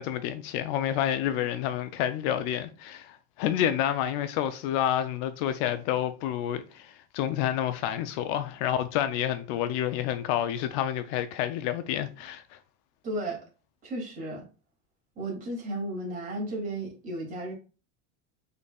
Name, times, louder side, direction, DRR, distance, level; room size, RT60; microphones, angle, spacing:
voice 1, 0.0-12.6, left 11 dB, 65° left, 0.5 m, -29 dB
voice 2, 13.0-13.4 13.8-14.4 15.2-17.5, right 1 dB, 25° right, 2.5 m, -34 dB
5.2 x 3.9 x 2.4 m
cardioid pair, 150°, 32 cm